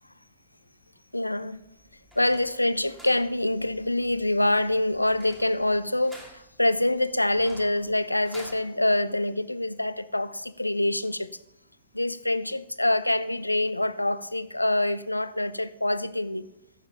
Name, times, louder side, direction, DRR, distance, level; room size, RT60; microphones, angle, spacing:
voice 1, 1.1-1.6 2.2-11.3 11.9-16.5, left 1 dB, 90° left, 0.4 m, -25 dB
sound 1, 1.6-8.6, right 1 dB, 10° right, 2.6 m, -51 dB
14.5 x 6.9 x 4.0 m
figure-of-eight pair, 105°, 0 cm